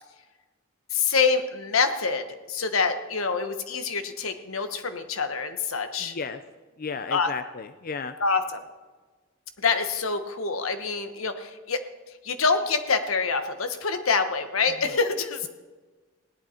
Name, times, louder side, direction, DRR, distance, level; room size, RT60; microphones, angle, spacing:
voice 1, 0.9-6.1 7.1-7.3 8.2-8.6 9.6-11.8 12.2-15.5, left 4 dB, 85° left, 8 dB, 1.2 m, -26 dB
voice 2, 6.0-6.4 6.8-8.2, left 5 dB, 45° left, 10 dB, 0.5 m, -34 dB
17.5 x 11.5 x 4.4 m, 1.3 s
head